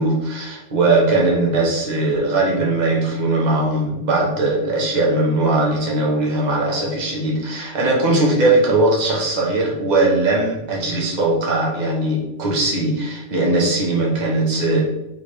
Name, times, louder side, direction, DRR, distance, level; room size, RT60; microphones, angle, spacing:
voice 1, 0.0-15.0, right 2 dB, 40° right, -3 dB, 1.2 m, -19 dB
4.6 x 3.5 x 3.2 m, 0.94 s
omnidirectional pair, 1.2 m